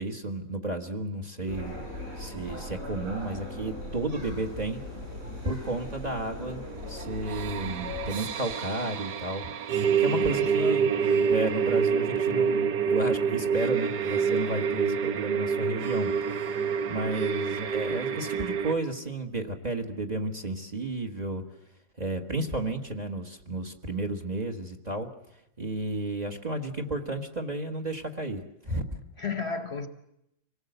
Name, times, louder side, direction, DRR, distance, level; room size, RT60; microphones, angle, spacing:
voice 1, 0.0-1.8 2.2-4.8 5.4-6.6 6.9-9.5 10.0-11.0 11.3-16.6 16.9-21.4 22.0-25.1 25.6-29.0, right 2 dB, 25° right, 5 dB, 1.5 m, -32 dB
sound 1, 1.5-8.1, left 1 dB, 45° right, 7.5 m, -39 dB
sound 2, 7.0-18.7, right 6 dB, 80° right, 1.6 m, -27 dB
voice 2, 10.1-11.0 29.2-29.9, left 5 dB, 45° left, 8 dB, 1.1 m, -34 dB
25.5 x 18.0 x 7.9 m, 0.83 s
omnidirectional pair, 1.7 m